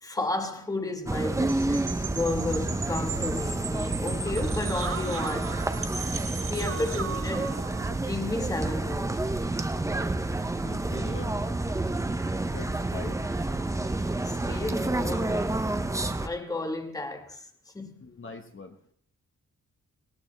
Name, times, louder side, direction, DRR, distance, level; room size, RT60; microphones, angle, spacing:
voice 1, 0.0-5.7 6.4-7.5 8.0-9.2 14.2-15.6 16.2-17.5 17.7-18.1, left 2 dB, 10° left, 1.3 m, -33 dB
sound 1, 1.1-16.3, right 2 dB, 10° right, 0.6 m, -29 dB
sound 2, 1.5-6.8, right 5 dB, 65° right, 2.8 m, -40 dB
sound 3, 4.0-9.7, right 6 dB, 40° right, 0.9 m, -38 dB
voice 2, 10.5-11.3 12.5-13.2 18.0-18.7, left 4 dB, 40° left, 1.2 m, -42 dB
20.0 x 18.0 x 3.3 m
wide cardioid pair, 175°, 33 cm